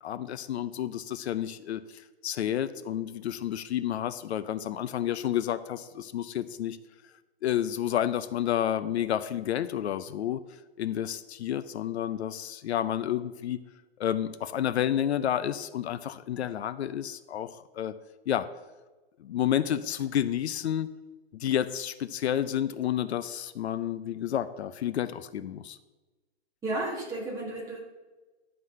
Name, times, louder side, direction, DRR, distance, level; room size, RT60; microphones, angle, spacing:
voice 1, 0.0-6.8 7.4-10.4 10.8-13.6 14.0-17.9 18.3-18.5 19.2-20.9 21.3-25.8, left 10 dB, 75° left, 12 dB, 0.6 m, -30 dB
voice 2, 26.6-27.8, right 2 dB, 10° right, -3 dB, 1.4 m, -33 dB
11.0 x 4.0 x 6.4 m, 1.2 s
hypercardioid pair, 165°, 33 cm